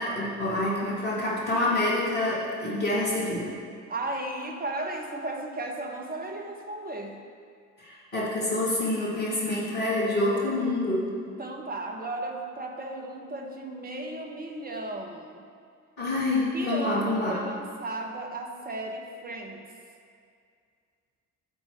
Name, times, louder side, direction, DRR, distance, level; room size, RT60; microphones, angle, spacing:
voice 1, 0.0-3.5 7.8-11.1 16.0-17.4, left 1 dB, 75° left, -8 dB, 1.7 m, -27 dB
voice 2, 3.9-7.2 11.3-15.4 16.5-19.6, right 2 dB, 20° right, 2 dB, 1.2 m, -35 dB
12.5 x 4.2 x 4.6 m, 2.2 s
figure-of-eight pair, 45°, 41 cm